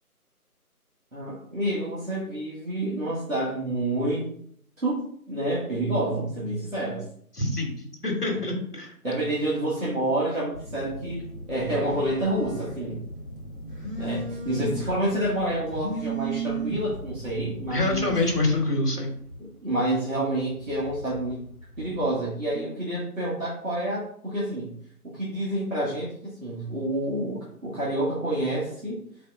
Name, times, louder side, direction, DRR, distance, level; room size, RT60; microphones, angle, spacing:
voice 1, 1.1-4.3 4.8-7.1 9.0-13.0 14.0-18.2 19.6-21.4 21.8-24.7 25.0-29.0, right 1 dB, 60° right, -8 dB, 1.5 m, -28 dB
voice 2, 7.3-7.7 8.0-8.9 17.7-19.1, left 2 dB, 85° left, 1 dB, 1.6 m, -25 dB
Telephone, 10.5-18.6, right 2 dB, 35° left, 1.3 m, -35 dB
sound 1, 15.6-22.6, equal, 25° right, 1.4 m, -45 dB
4.2 x 3.1 x 3.6 m, 0.64 s
figure-of-eight pair, 165°, 45 cm